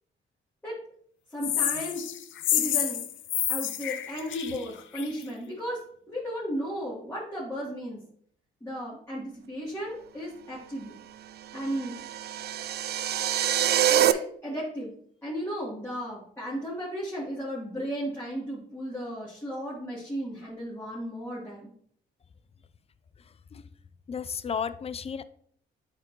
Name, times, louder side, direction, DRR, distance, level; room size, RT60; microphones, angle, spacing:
voice 1, 1.3-2.0 2.5-3.0 3.5-5.8 6.1-8.0 8.6-11.0 11.5-12.0 13.9-14.9 15.2-21.7, equal, 10° left, -8 dB, 2.8 m, -35 dB
sound 1, 1.4-5.2, left 11 dB, 75° left, 0.6 m, -29 dB
sound 2, 11.6-14.1, right 11 dB, 55° right, 0.4 m, -25 dB
voice 2, 24.1-25.2, left 6 dB, 30° left, 14 dB, 0.5 m, -33 dB
8.8 x 5.1 x 3.0 m, 0.62 s
cardioid pair, 90°, 20 cm